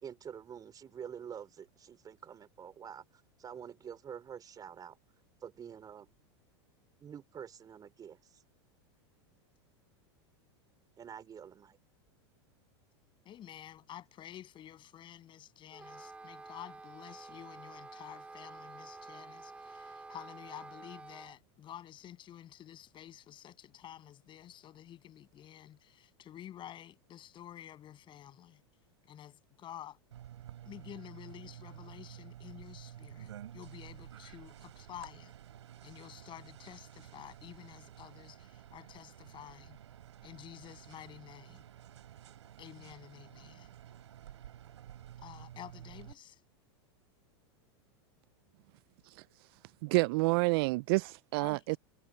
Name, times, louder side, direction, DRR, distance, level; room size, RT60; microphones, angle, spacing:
voice 1, 0.0-5.0 5.4-6.1 7.0-8.4 11.0-11.8, right 8 dB, 25° right, 4.7 m, -47 dB
voice 2, 13.2-28.6 29.1-30.0 30.7-35.3 35.8-39.8 40.2-41.6 42.6-43.7 45.2-46.4 51.4-51.6, left 11 dB, 35° left, 7.7 m, -50 dB
Wind instrument woodwind instrument, 15.7-21.4, right 3 dB, 10° right, 1.2 m, -50 dB
sound 1, 30.1-46.1, right 11 dB, 85° right, 5.4 m, -51 dB
voice 3, 49.8-51.8, right 26 dB, 60° right, 0.4 m, -28 dB
hypercardioid pair, 115°, 14 cm